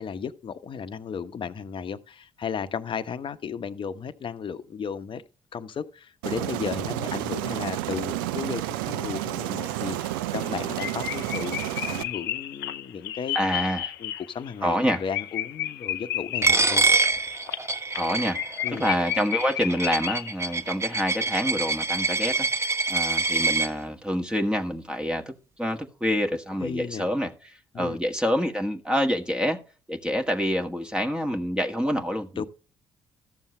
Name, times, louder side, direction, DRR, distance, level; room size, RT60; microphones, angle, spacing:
voice 1, 0.0-5.2 5.5-13.6 14.0-16.9 18.6-18.9 26.6-27.1 27.7-28.0 32.4-32.5, left 6 dB, 50° left, 1.0 m, -34 dB
Aircraft, 6.2-12.0, right 14 dB, 80° right, 0.5 m, -30 dB
sound 1, 9.6-9.7 10.0-10.1 10.4-10.5 10.8-20.6 20.9-21.0, left 12 dB, 85° left, 0.6 m, -33 dB
voice 2, 13.3-13.9 14.6-15.0 18.0-18.4 18.7-22.5 22.9-25.3 25.6-29.6 29.9-32.5, equal, 10° right, 1.7 m, -27 dB
Coin (dropping), 16.4-23.7, right 3 dB, 25° right, 1.1 m, -25 dB
13.5 x 7.2 x 3.3 m
hypercardioid pair, 45°, 11 cm